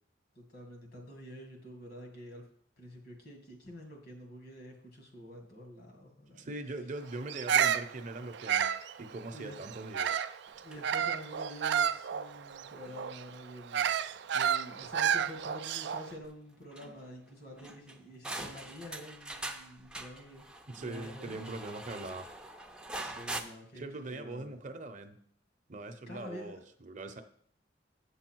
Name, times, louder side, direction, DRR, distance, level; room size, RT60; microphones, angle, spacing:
voice 1, 0.4-2.5 2.8-6.5 9.3-9.6 10.6-21.5 23.0-24.7 26.1-26.6, equal, 60° left, 2 dB, 2.2 m, -48 dB
voice 2, 6.4-8.7 9.0-10.3 20.7-22.3 23.8-25.2 25.7-27.2, right 2 dB, 45° right, 7 dB, 0.7 m, -41 dB
Bird vocalization bird call bird song, 7.3-10.4 10.8-16.1, right 8 dB, 65° right, 0.4 m, -31 dB
sound 1, 10.5-11.9 12.4-12.6 12.8-13.4 14.2-15.0 15.2-15.5 16.0-16.1 16.2-16.3 16.7-17.3 17.6-23.4, right 2 dB, 5° right, 0.6 m, -44 dB
8.1 x 7.1 x 4.6 m, 0.62 s
head